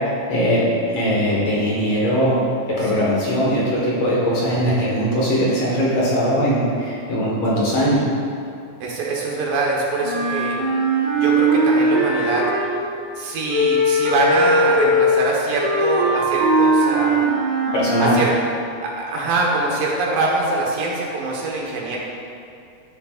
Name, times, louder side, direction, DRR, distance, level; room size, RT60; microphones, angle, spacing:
voice 1, 0.3-2.4 2.8-8.0 17.7-18.2, equal, 55° left, -6 dB, 2.2 m, -20 dB
voice 2, 8.8-10.6 11.2-12.5 13.2-17.2 18.0-18.3 18.8-22.0, right 2 dB, 85° right, -3 dB, 3.0 m, -23 dB
Wind instrument woodwind instrument, 10.0-12.9 13.5-18.3, right 1 dB, 50° right, 1.1 m, -19 dB
13.0 x 6.5 x 2.5 m, 2.5 s
omnidirectional pair, 3.8 m